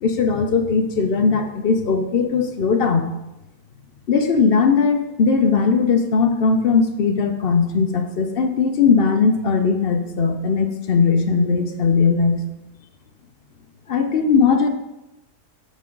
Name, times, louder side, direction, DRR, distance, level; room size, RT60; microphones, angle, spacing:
voice 1, 0.0-3.1 4.1-12.4 13.9-14.7, left 5 dB, 55° left, 5 dB, 0.7 m, -19 dB
8.4 x 5.5 x 3.8 m, 0.96 s
omnidirectional pair, 1.6 m